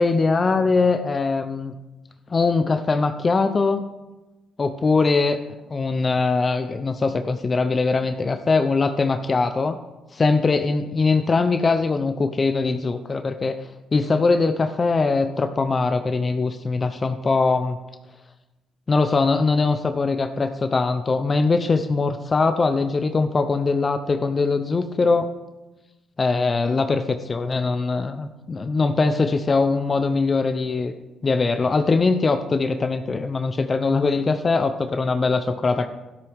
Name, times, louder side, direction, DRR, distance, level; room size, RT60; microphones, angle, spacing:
voice 1, 0.0-1.7 2.3-3.8 4.6-5.4 5.7-9.8 10.1-13.5 13.9-17.8 18.9-25.3 26.2-30.9 31.2-35.9, left 4 dB, 35° left, 8 dB, 0.7 m, -21 dB
12.5 x 12.0 x 3.6 m, 1.1 s
supercardioid pair, 65°, 0 cm